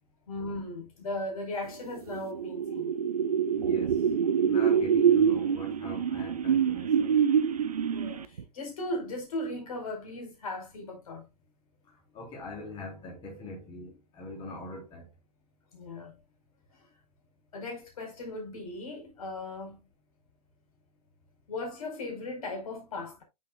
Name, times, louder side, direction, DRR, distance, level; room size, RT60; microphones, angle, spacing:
voice 1, 0.3-2.9 7.9-11.3 15.7-16.2 16.7-16.9 17.5-19.8 21.5-23.2, left 1 dB, 65° left, 4.6 m, -37 dB
sound 1, 1.9-8.4, right 7 dB, 70° right, 0.9 m, -26 dB
voice 2, 3.5-4.0 4.4-7.2 12.1-15.1, left 1 dB, 25° left, 3.9 m, -42 dB
9.3 x 6.2 x 2.4 m
figure-of-eight pair, 115°, 20 cm